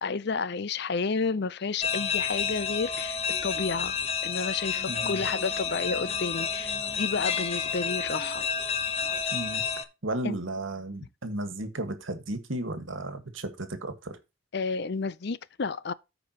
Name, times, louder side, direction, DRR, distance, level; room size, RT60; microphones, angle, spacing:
voice 1, 0.0-8.5 10.2-10.4 14.5-15.9, left 4 dB, 55° left, 0.5 m, -31 dB
sound 1, 1.8-9.8, left 6 dB, 30° left, 0.9 m, -30 dB
voice 2, 4.9-5.2 9.3-9.6 10.0-14.2, right 1 dB, 70° right, 1.7 m, -34 dB
14.0 x 5.0 x 2.9 m
head